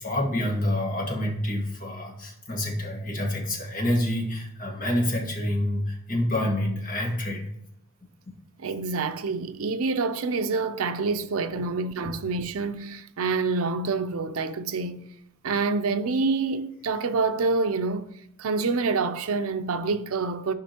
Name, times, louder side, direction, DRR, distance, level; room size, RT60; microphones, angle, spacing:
voice 1, 0.0-7.5 8.3-8.4 11.5-11.6 12.0-12.1, left 1 dB, 40° left, 1.7 m, -27 dB
voice 2, 8.6-15.0 15.4-18.1 18.4-20.5, right 4 dB, 85° right, 0.5 m, -27 dB
11.5 x 5.1 x 2.9 m
head